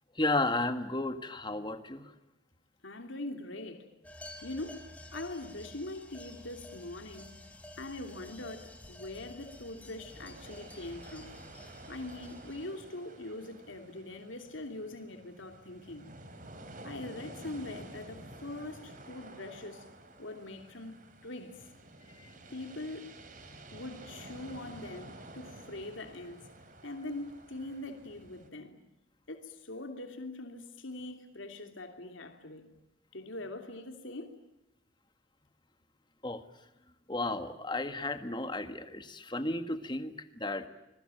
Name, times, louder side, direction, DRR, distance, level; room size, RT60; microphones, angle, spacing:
voice 1, 0.1-2.1 22.2-22.3 23.5-23.6 36.2-36.4 37.1-40.7, left 2 dB, 25° left, 1.7 m, -33 dB
voice 2, 2.8-3.9 4.4-7.4 7.8-11.4 11.9-16.1 16.8-19.8 20.2-21.6 22.5-23.2 23.7-26.4 26.8-28.8 29.3-32.7 33.1-34.3, left 2 dB, 80° left, 3.0 m, -42 dB
sound 1, 4.0-12.6, left 1 dB, 5° left, 3.6 m, -51 dB
sound 2, 10.0-28.5, right 2 dB, 40° right, 3.6 m, -51 dB
26.0 x 22.5 x 9.1 m
head